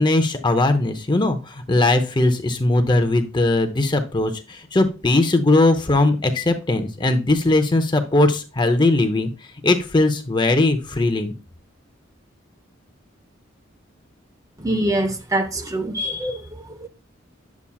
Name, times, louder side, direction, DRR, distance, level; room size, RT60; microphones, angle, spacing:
voice 1, 0.0-9.3 9.6-11.3, left 2 dB, 25° left, 0.6 m, -19 dB
voice 2, 14.6-16.4 16.8-16.9, right 1 dB, 15° right, 0.6 m, -24 dB
9.6 x 7.1 x 2.3 m
head